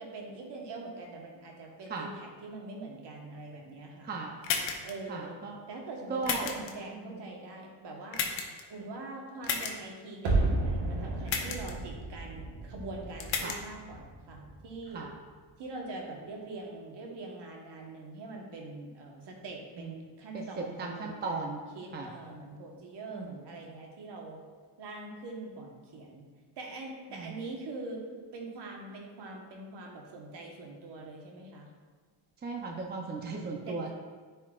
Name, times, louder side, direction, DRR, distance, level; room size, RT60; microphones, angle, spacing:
voice 1, 0.0-4.1 4.8-5.4 5.7-8.2 8.7-15.0 15.6-24.4 24.8-26.2 26.5-28.0 28.3-31.7 33.7-33.9, right 2 dB, 60° right, 0 dB, 1.4 m, -43 dB
sound 1, 4.4-4.9 6.2-6.7 8.1-8.6 9.4-9.7 11.3-11.7 13.2-13.6, left 6 dB, 75° left, 1.0 m, -32 dB
voice 2, 5.1-5.6 6.1-6.5 6.9-7.2 8.7-8.9 13.4-13.6 14.9-15.1 19.8-19.9 20.3-21.6 21.9-22.1 23.1-23.3 27.1-27.3 32.4-33.9, right 4 dB, 20° right, 0 dB, 0.6 m, -37 dB
sound 2, 10.2-15.2 15.4-15.5, right 2 dB, 85° right, 1.6 m, -33 dB
9.6 x 4.3 x 2.4 m, 1.5 s
cardioid pair, 105°, 47 cm